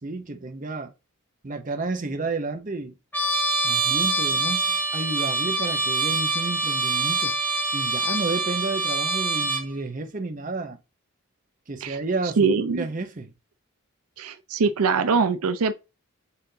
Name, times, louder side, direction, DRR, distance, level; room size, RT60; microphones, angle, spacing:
voice 1, 0.0-0.9 1.4-2.9 3.6-7.3 7.7-10.8 11.7-12.5 12.8-13.3, right 3 dB, 35° right, 0.6 m, -31 dB
Trumpet, 3.1-9.7, right 2 dB, 10° left, 1.1 m, -25 dB
voice 2, 12.4-12.8 14.2-15.7, right 5 dB, 85° right, 0.5 m, -22 dB
5.6 x 3.4 x 2.7 m
head